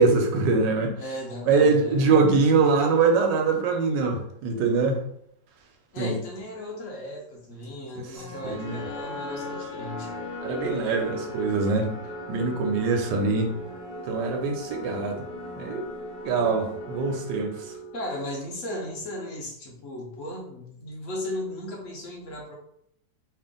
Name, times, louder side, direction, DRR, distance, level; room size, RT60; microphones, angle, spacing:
voice 1, 0.0-1.0 1.5-5.0 6.0-6.2 8.0-8.9 10.4-11.9 12.3-13.5 14.0-15.2 15.6-15.8 16.2-17.7, right 4 dB, 80° right, 3 dB, 1.3 m, -23 dB
voice 2, 1.0-2.7 5.9-10.1 17.9-22.5, left 1 dB, 50° left, -1 dB, 1.1 m, -36 dB
sound 1, 8.2-18.4, left 1 dB, 85° left, 1.5 m, -38 dB
3.4 x 2.5 x 3.7 m, 0.71 s
omnidirectional pair, 1.9 m